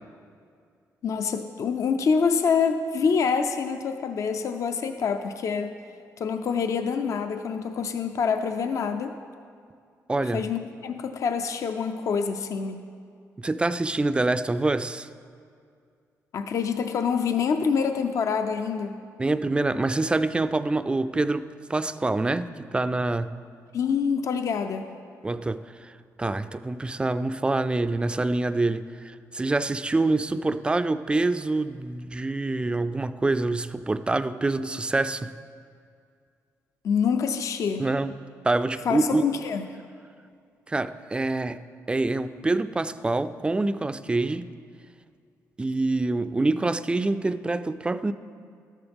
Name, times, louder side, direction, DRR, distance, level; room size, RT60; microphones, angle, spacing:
voice 1, 1.0-5.7 6.2-9.2 10.3-12.9 16.3-19.0 23.7-24.9 36.8-37.9 38.9-39.7, left 6 dB, 60° left, 7 dB, 0.5 m, -26 dB
voice 2, 10.1-10.4 13.4-15.1 19.2-23.3 25.2-35.3 37.8-38.2 38.4-39.2 40.7-41.6 41.9-44.5 45.6-48.1, right 2 dB, 15° right, 12 dB, 0.3 m, -26 dB
12.5 x 10.5 x 3.5 m, 2.3 s
cardioid pair, 105°, 6 cm